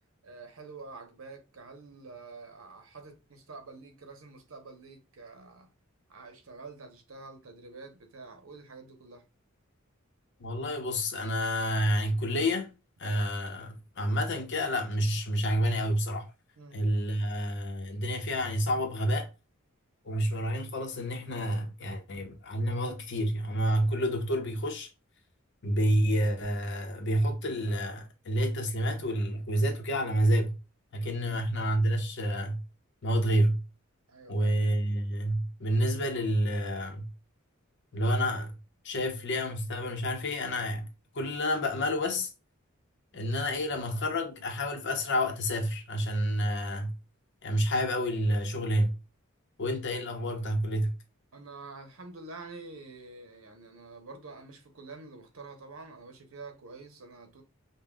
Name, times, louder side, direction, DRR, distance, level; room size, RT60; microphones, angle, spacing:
voice 1, 0.2-5.7 6.1-9.2 16.6-16.8 31.0-31.4 34.1-34.5 51.3-57.4, right 3 dB, 80° right, 1.0 m, -47 dB
voice 2, 10.4-12.7 13.0-16.3 16.7-19.3 20.0-24.9 25.6-30.6 30.9-32.6 33.0-33.6 34.3-37.1 37.9-38.5 38.8-40.9 41.1-42.3 43.1-46.9 47.4-48.9 49.6-50.9, equal, 60° left, 0.8 m, -29 dB
5.4 x 2.2 x 2.3 m
head